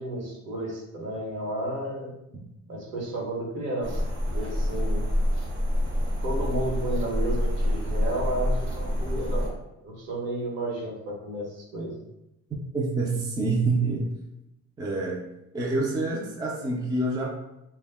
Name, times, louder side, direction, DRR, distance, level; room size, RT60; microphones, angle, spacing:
voice 1, 0.0-2.1 2.7-5.0 6.2-9.5 9.8-11.9, right 1 dB, 60° right, -2 dB, 1.0 m, -32 dB
sound 1, 3.8-9.5, left 1 dB, 40° right, 0.7 m, -27 dB
voice 2, 12.7-14.0 14.8-15.2 15.5-17.4, right 3 dB, 15° right, -3 dB, 0.4 m, -27 dB
2.2 x 2.1 x 3.4 m, 0.88 s
cardioid pair, 120°, 29 cm